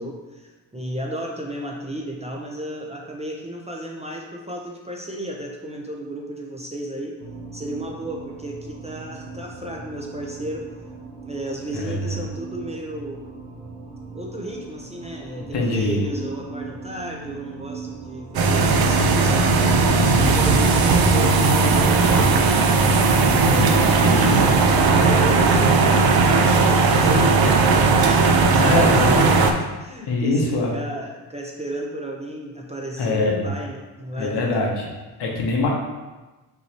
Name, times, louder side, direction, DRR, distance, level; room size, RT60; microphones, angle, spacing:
voice 1, 0.0-7.1 7.5-10.6 11.3-13.2 14.1-22.7 23.2-23.9 24.8-29.5 29.8-34.5, right 1 dB, 15° right, -1 dB, 0.8 m, -33 dB
sound 1, 7.2-25.1, right 4 dB, 85° right, 1.4 m, -39 dB
voice 2, 11.7-12.2 15.5-16.0 19.9-20.3 23.3-24.5 28.5-29.3 30.1-30.7 33.0-33.5 34.2-34.9 35.2-35.7, left 2 dB, 60° left, -1 dB, 1.2 m, -23 dB
sound 2, 18.3-29.5, right 3 dB, 50° right, 0.6 m, -17 dB
5.4 x 3.1 x 3.0 m, 1.2 s
supercardioid pair, 65°, 48 cm